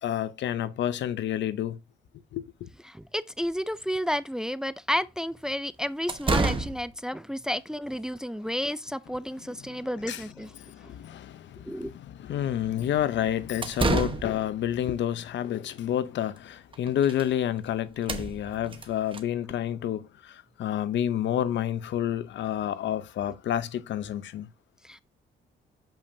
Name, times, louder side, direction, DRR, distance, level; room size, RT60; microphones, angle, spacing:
voice 1, 0.0-1.8 2.3-2.7 9.7-10.2 10.6-24.5, left 11 dB, 65° left, 0.6 m, -29 dB
voice 2, 2.9-10.5 11.6-11.9 24.8-25.0, equal, 5° right, 0.3 m, -31 dB
sound 1, 3.5-3.6 5.5-5.6 6.1-6.9 13.4-14.5 16.4-16.5 16.7-17.3 17.6-17.7 17.9-19.2, right 3 dB, 25° right, 1.0 m, -29 dB
6.8 x 5.6 x 2.6 m
cardioid pair, 90°, 20 cm